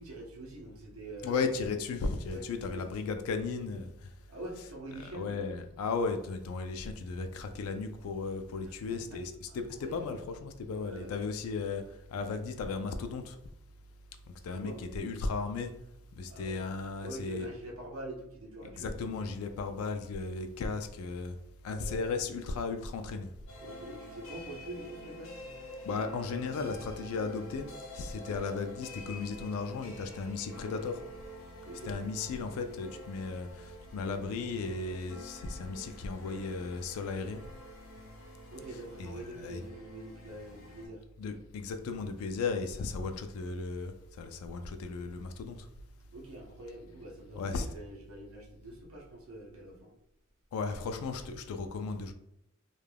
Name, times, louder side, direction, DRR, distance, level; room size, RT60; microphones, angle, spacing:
voice 1, 0.0-1.5 2.3-2.5 2.7-2.9 4.3-5.3 8.6-9.2 9.5-10.1 10.7-11.2 14.5-15.1 16.3-16.6 17.0-18.9 21.7-22.2 23.6-25.4 31.6-31.9 38.5-41.0 46.1-49.9, right 1 dB, 80° right, 0.7 m, -45 dB
voice 2, 1.2-3.9 5.1-11.8 12.1-13.4 14.4-15.7 16.1-17.5 18.8-21.3 21.6-23.3 25.9-27.7 27.9-31.0 31.8-37.4 39.0-39.6 41.2-45.6 47.4-47.7 50.5-52.1, left 4 dB, 85° left, 0.3 m, -35 dB
sound 1, 23.5-40.9, left 1 dB, 65° left, 0.8 m, -48 dB
2.3 x 2.2 x 3.2 m
head